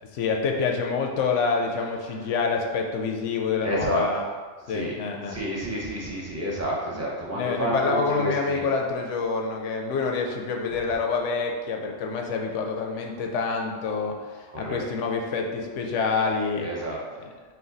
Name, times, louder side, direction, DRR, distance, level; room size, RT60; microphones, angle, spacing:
voice 1, 0.1-4.3 4.7-5.4 7.3-16.7 17.2-17.3, left 4 dB, 70° left, 2 dB, 0.9 m, -27 dB
voice 2, 3.6-4.0 4.7-4.9 5.3-8.6 14.6-14.8 16.6-17.0, equal, 20° right, -5 dB, 0.5 m, -29 dB
4.4 x 2.2 x 3.9 m, 1.5 s
omnidirectional pair, 1.3 m